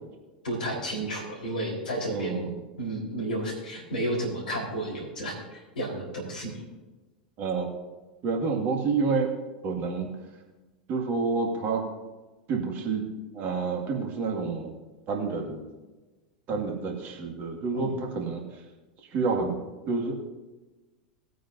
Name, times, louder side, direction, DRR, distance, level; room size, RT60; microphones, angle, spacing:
voice 1, 0.4-2.4 2.8-6.6 17.7-18.0, right 1 dB, 70° left, 0 dB, 4.3 m, -32 dB
voice 2, 2.1-2.5 7.4-7.7 8.2-9.3 9.6-10.1 10.9-11.8 12.5-13.1 13.3-14.7 15.1-15.6 16.5-18.4 19.1-19.6 19.9-20.2, right 4 dB, 40° right, 1 dB, 2.1 m, -28 dB
19.5 x 9.2 x 2.7 m, 1.2 s
figure-of-eight pair, 85°, 5 cm